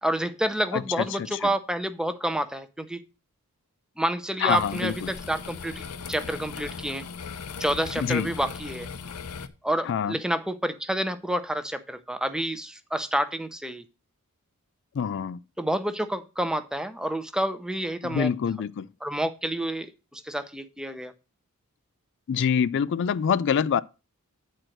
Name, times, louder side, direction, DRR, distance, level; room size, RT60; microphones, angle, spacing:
voice 1, 0.0-3.0 4.0-5.7 6.1-7.0 7.6-8.9 9.6-13.8 15.6-18.3 19.0-21.1, right 1 dB, 5° right, 0.6 m, -29 dB
voice 2, 4.4-5.1 8.0-8.3 9.9-10.2 15.0-15.4 18.0-18.9 22.3-23.8, left 7 dB, 55° left, 0.3 m, -25 dB
sound 1, 4.5-9.5, left 5 dB, 85° left, 0.8 m, -38 dB
9.0 x 4.5 x 6.4 m
head